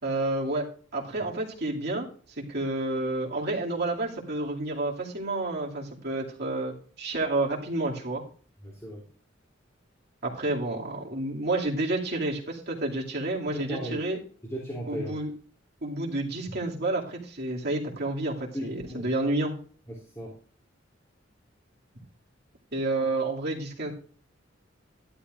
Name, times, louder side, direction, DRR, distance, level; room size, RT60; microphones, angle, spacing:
voice 1, 0.0-0.6 0.9-2.1 2.4-8.2 10.2-14.2 14.9-15.3 15.8-19.5 22.7-23.9, right 2 dB, 55° right, -2 dB, 2.4 m, -30 dB
voice 2, 8.6-9.0 13.5-14.0 14.5-15.1 18.5-19.0 19.9-20.3, equal, 15° left, -3 dB, 3.0 m, -36 dB
13.0 x 11.5 x 2.5 m, 0.43 s
head